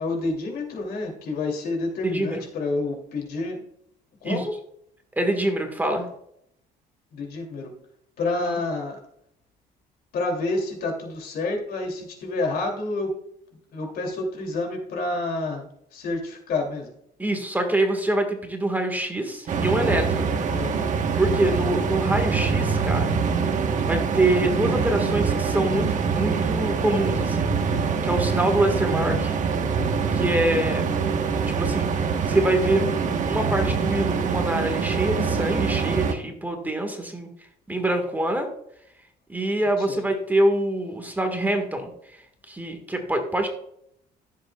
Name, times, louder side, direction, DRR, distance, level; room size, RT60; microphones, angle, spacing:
voice 1, 0.0-3.6 4.2-4.5 7.1-7.7 8.2-9.0 10.1-13.1 13.7-15.7 15.9-16.9 20.5-20.9 30.5-30.9 39.8-40.1, left 2 dB, 65° left, 2 dB, 2.9 m, -29 dB
voice 2, 2.0-2.4 4.2-4.5 5.1-6.1 8.5-8.6 17.2-20.3 21.2-23.2 23.9-27.8 28.0-29.4 30.1-30.9 31.3-32.9 33.2-37.3 37.7-38.5 39.3-43.5, right 1 dB, 10° right, 4 dB, 1.7 m, -25 dB
sound 1, 19.5-36.1, right 5 dB, 45° right, 1.3 m, -24 dB
14.5 x 7.5 x 2.4 m, 0.72 s
cardioid pair, 110°, 17 cm